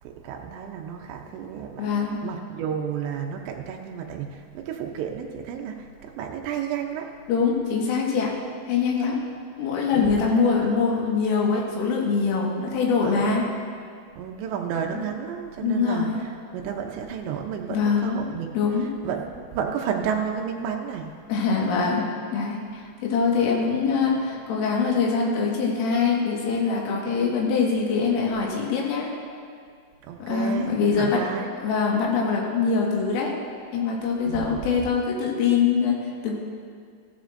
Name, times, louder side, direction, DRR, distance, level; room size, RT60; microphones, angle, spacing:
voice 1, 0.0-1.9 2.2-7.1 9.9-11.0 13.0-13.6 14.1-21.2 30.0-31.5 34.3-34.6, right 7 dB, 80° right, 2 dB, 2.6 m, -32 dB
voice 2, 1.8-2.3 7.3-8.4 8.7-9.3 9.6-13.5 15.6-16.2 17.7-18.3 18.6-18.9 21.3-29.1 30.3-31.2 31.6-33.4 33.7-36.4, left 5 dB, 80° left, -3 dB, 4.3 m, -23 dB
15.5 x 14.5 x 2.6 m, 2.1 s
omnidirectional pair, 5.8 m